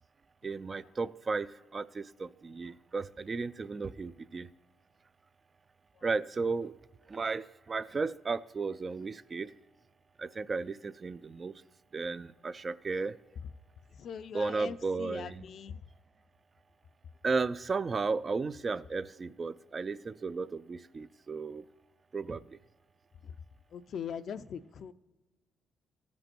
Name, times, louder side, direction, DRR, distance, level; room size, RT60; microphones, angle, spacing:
voice 1, 0.4-4.5 6.0-6.7 7.1-9.5 10.2-11.5 11.9-13.1 14.3-15.4 17.2-21.6 22.1-22.4, right 4 dB, 35° right, 0.3 m, -34 dB
voice 2, 14.0-15.8 23.2-23.3 23.7-24.9, left 7 dB, 60° left, 0.4 m, -41 dB
14.5 x 5.2 x 4.4 m
cardioid pair, 90°, 0 cm